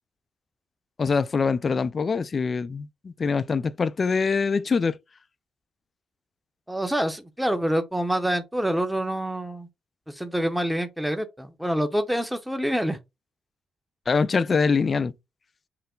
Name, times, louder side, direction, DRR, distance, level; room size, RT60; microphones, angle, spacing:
voice 1, 1.0-5.0 14.1-15.1, left 5 dB, 40° left, 0.4 m, -24 dB
voice 2, 6.7-9.7 10.1-13.0, right 1 dB, 5° right, 0.7 m, -26 dB
5.7 x 2.1 x 3.8 m
cardioid pair, 90°, 0 cm